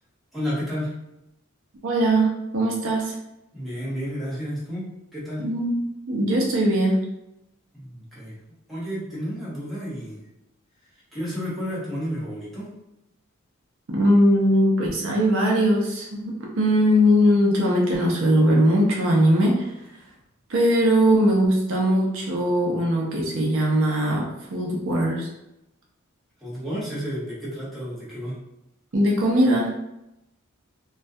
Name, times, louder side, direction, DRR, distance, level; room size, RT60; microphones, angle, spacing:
voice 1, 0.3-0.9 3.5-4.9 5.1-5.4 7.7-8.4 8.7-10.2 11.1-12.7 26.4-28.4, equal, ahead, -10 dB, 0.9 m, -31 dB
voice 2, 1.8-3.1 5.4-5.8 6.1-7.0 13.9-19.7 20.5-25.3 28.9-29.7, equal, 65° right, -2 dB, 0.5 m, -20 dB
2.3 x 2.2 x 2.6 m, 0.88 s
head